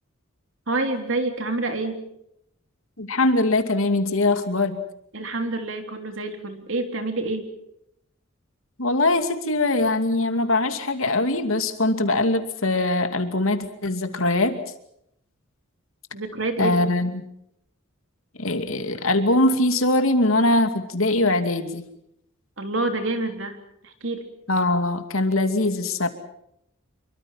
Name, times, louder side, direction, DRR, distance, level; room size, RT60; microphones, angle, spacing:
voice 1, 0.7-2.0 5.1-7.5 16.1-16.9 22.6-24.3, right 2 dB, 60° right, 6 dB, 3.6 m, -28 dB
voice 2, 3.0-4.8 8.8-14.6 16.6-17.3 18.4-21.8 24.5-26.1, left 2 dB, 75° left, 8 dB, 2.6 m, -22 dB
27.5 x 24.0 x 5.8 m, 0.76 s
head